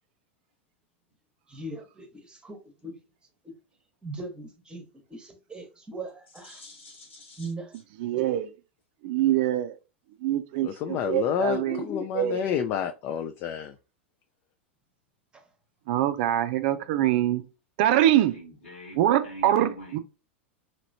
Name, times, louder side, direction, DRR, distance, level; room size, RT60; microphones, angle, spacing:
voice 1, 1.5-3.0 3.4-3.5 4.0-4.8 5.1-6.7 7.4-7.7 11.6-12.1, right 1 dB, 15° right, 1.0 m, -39 dB
voice 2, 6.4-7.5 18.3-20.0, equal, 80° left, 1.7 m, -44 dB
voice 3, 8.0-8.5 9.0-9.8 10.2-10.7 11.1-11.8 12.1-12.5 15.9-17.4 17.8-18.4 19.0-20.0, right 12 dB, 55° right, 0.4 m, -24 dB
voice 4, 10.6-13.7, left 8 dB, 40° left, 0.4 m, -29 dB
3.0 x 2.8 x 2.7 m
hypercardioid pair, 95°, 6 cm